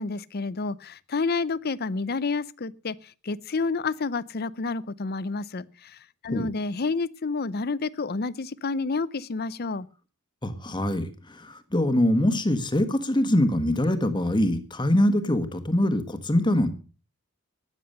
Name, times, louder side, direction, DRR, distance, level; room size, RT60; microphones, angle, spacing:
voice 1, 0.0-9.9, left 4 dB, 45° left, 0.6 m, -29 dB
voice 2, 10.4-16.7, left 1 dB, 20° left, 1.5 m, -23 dB
13.0 x 9.9 x 6.6 m
head